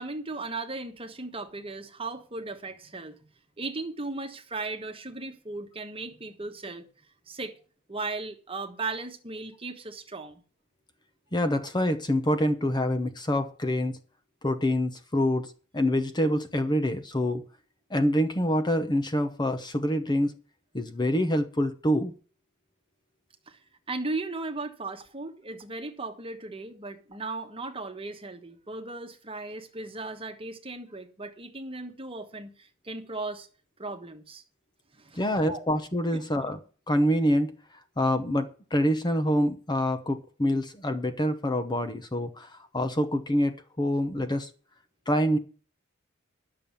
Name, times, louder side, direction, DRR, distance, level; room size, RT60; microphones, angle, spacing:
voice 1, 0.0-3.2 3.6-6.9 7.3-7.5 7.9-10.4 23.5-23.6 23.9-33.5 33.8-34.4 34.9-35.6 36.4-36.5, right 3 dB, 25° right, 1.3 m, -37 dB
voice 2, 11.3-14.0 14.4-17.4 17.9-20.3 20.7-22.1 35.1-36.6 36.9-37.5 38.0-44.5 45.1-45.4, equal, 20° left, 0.9 m, -26 dB
11.0 x 6.8 x 7.2 m
head